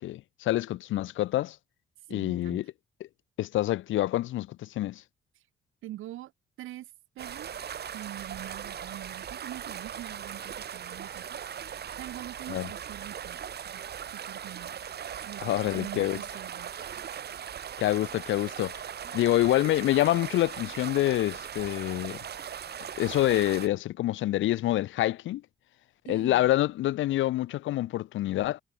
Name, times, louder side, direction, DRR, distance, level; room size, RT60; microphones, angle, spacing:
voice 1, 0.0-1.6 2.1-2.6 3.4-5.0 12.5-12.7 15.4-16.2 17.8-18.7 19.1-22.2 23.0-25.4 26.1-28.6, left 15 dB, 75° left, 0.7 m, -27 dB
voice 2, 2.1-2.6 5.8-6.3 6.6-7.6 7.9-11.4 12.0-13.8 14.1-14.8 15.2-16.8 26.1-26.5, right 14 dB, 85° right, 7.1 m, -44 dB
sound 1, 7.2-23.7, right 8 dB, 55° right, 2.5 m, -39 dB
cardioid pair, 90°, 20 cm